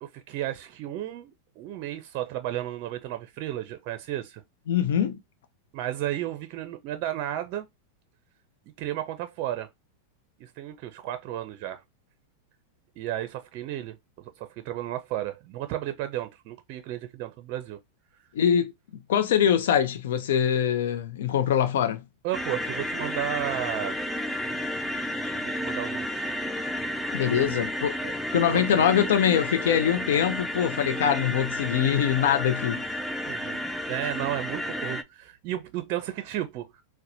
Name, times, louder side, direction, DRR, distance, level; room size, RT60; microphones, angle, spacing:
voice 1, 0.0-4.4 5.7-7.7 8.8-9.7 10.4-11.8 13.0-17.8 22.2-24.0 25.3-26.1 27.3-27.6 28.0-28.1 28.5-29.0 33.3-33.6 33.9-36.8, right 13 dB, 50° right, 0.5 m, -33 dB
voice 2, 4.7-5.2 18.3-18.7 19.1-22.0 27.1-28.0 28.3-32.8, left 9 dB, 70° left, 0.5 m, -23 dB
sound 1, 22.3-35.0, left 1 dB, 5° left, 0.4 m, -32 dB
4.0 x 2.1 x 2.7 m
hypercardioid pair, 110°, 0 cm